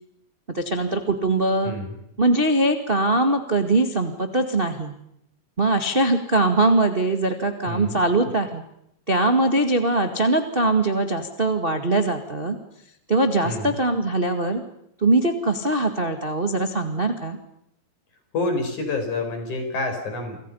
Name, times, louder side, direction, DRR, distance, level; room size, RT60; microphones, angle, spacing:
voice 1, 0.5-1.7 2.2-4.9 5.6-8.6 9.1-12.6 13.1-14.6 15.0-17.4, right 2 dB, 25° right, 6 dB, 1.4 m, -21 dB
voice 2, 7.7-8.0 13.4-13.8 18.3-20.4, left 2 dB, 55° left, 5 dB, 6.7 m, -28 dB
30.0 x 26.0 x 5.6 m, 0.77 s
omnidirectional pair, 4.1 m